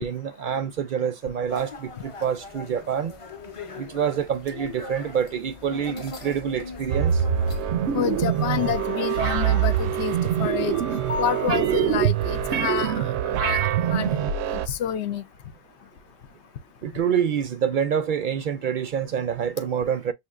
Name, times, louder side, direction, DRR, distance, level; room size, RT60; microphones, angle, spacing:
voice 1, 0.0-3.1 3.8-7.2 16.8-20.1, right 8 dB, 60° right, 0.6 m, -27 dB
sound 1, 1.5-13.0, left 3 dB, 35° left, 0.6 m, -39 dB
sound 2, 6.9-14.7, right 9 dB, 85° right, 0.9 m, -24 dB
voice 2, 7.9-10.8 11.2-13.6 13.9-14.2 14.5-15.2, left 10 dB, 85° left, 0.9 m, -28 dB
6.3 x 2.7 x 2.4 m
omnidirectional pair, 1.1 m